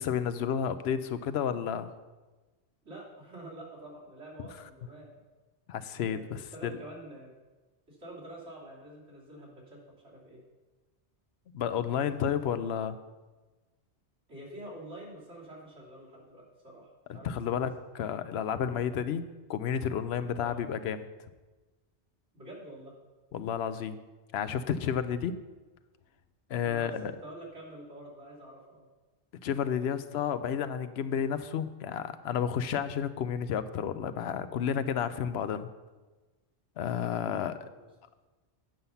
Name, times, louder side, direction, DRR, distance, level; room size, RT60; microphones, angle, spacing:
voice 1, 0.0-1.9 5.7-6.8 11.5-13.0 17.2-21.1 23.3-24.0 24.3-25.4 26.5-27.1 29.4-35.7 36.8-37.7, left 8 dB, 70° left, 12 dB, 0.8 m, -31 dB
voice 2, 2.8-5.1 5.9-7.3 7.9-10.4 14.3-17.7 20.4-20.6 22.3-22.9 26.6-28.9 37.2-37.9, right 1 dB, 90° right, -5 dB, 3.2 m, -47 dB
9.0 x 5.6 x 6.8 m, 1.2 s
omnidirectional pair, 1.1 m